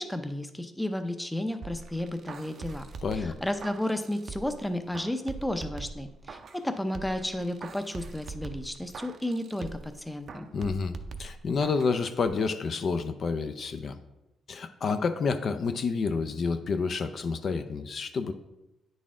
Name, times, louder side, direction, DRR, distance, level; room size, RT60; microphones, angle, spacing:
voice 1, 0.0-2.8 3.1-10.5, left 1 dB, 5° left, 8 dB, 0.5 m, -33 dB
sound 1, 1.6-4.6 4.9-6.6 6.9-9.9 10.3-12.0 12.3-12.4, right 4 dB, 50° right, 0.5 m, -42 dB
voice 2, 3.0-3.3 10.5-14.0 14.5-18.3, left 4 dB, 50° left, 9 dB, 0.5 m, -29 dB
9.2 x 4.1 x 3.7 m, 0.93 s
cardioid pair, 90°, 0 cm